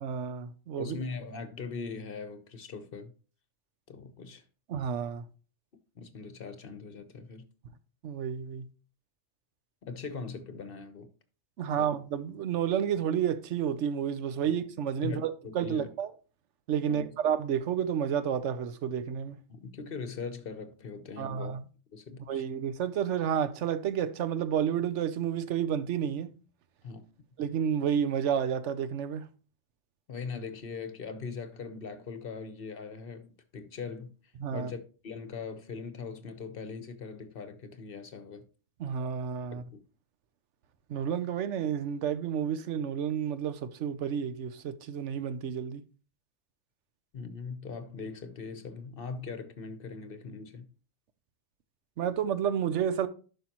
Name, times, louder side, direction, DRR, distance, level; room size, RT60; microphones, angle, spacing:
voice 1, 0.0-1.0 4.7-5.2 8.0-8.7 11.6-16.1 16.7-19.4 21.2-21.6 22.3-26.3 27.4-29.3 34.4-34.7 38.8-39.6 40.9-45.8 52.0-53.1, right 8 dB, 80° right, 1.0 m, -30 dB
voice 2, 0.8-3.1 3.9-4.4 5.9-7.4 9.8-11.1 11.7-11.9 14.4-14.6 15.0-15.9 16.8-17.1 19.5-21.6 21.9-22.4 26.8-27.0 30.1-34.1 34.5-38.4 39.5-39.8 47.1-50.7, left 5 dB, 55° left, 1.1 m, -40 dB
11.5 x 5.3 x 3.0 m
omnidirectional pair, 1.2 m